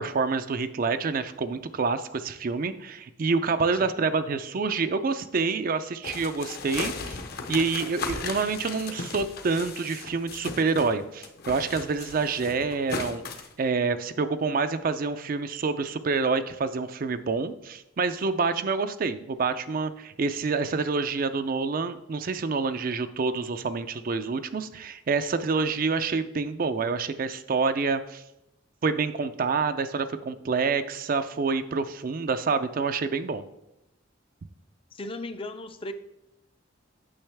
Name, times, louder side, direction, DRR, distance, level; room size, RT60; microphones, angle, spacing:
voice 1, 0.0-7.2 7.5-13.2 13.6-28.2 28.8-33.4, right 4 dB, 45° right, 11 dB, 0.4 m, -27 dB
sound 1, 6.0-10.9 11.2-13.5, left 4 dB, 50° left, 0.8 m, -36 dB
voice 2, 34.9-35.9, left 2 dB, 25° left, 9 dB, 0.5 m, -37 dB
8.8 x 6.3 x 3.4 m, 0.88 s
head